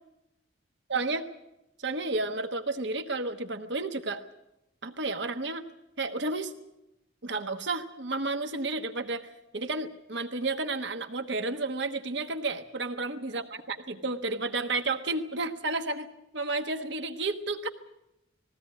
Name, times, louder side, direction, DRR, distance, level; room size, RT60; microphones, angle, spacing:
voice 1, 0.9-1.3 1.8-4.2 4.8-5.6 6.0-6.5 7.2-9.3 9.5-13.4 13.7-16.1 16.3-17.7, right 3 dB, 65° right, 6 dB, 1.2 m, -31 dB
20.5 x 16.0 x 9.1 m, 0.89 s
head